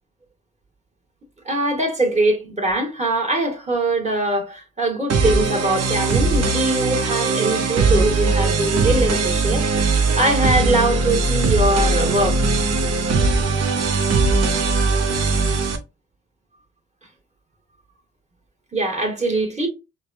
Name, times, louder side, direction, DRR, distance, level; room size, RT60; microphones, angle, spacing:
voice 1, 1.4-12.5 18.7-19.7, right 2 dB, 20° right, 1.7 m, -22 dB
sound 1, 5.1-15.8, right 3 dB, 55° right, 0.9 m, -20 dB
5.0 x 2.3 x 2.7 m
cardioid pair, 90°, 30 cm